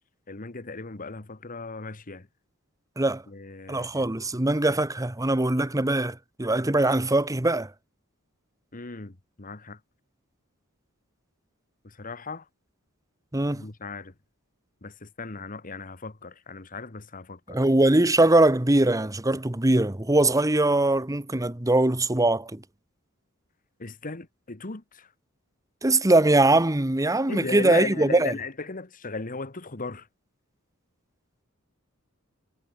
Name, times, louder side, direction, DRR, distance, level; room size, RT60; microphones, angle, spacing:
voice 1, 0.3-2.3 3.3-4.1 8.7-9.8 12.0-12.4 13.5-14.1 14.8-17.6 23.8-25.1 27.3-30.1, left 3 dB, 40° left, 1.4 m, -36 dB
voice 2, 3.7-7.7 13.3-13.6 17.5-22.6 25.8-28.3, right 2 dB, 15° right, 1.1 m, -22 dB
head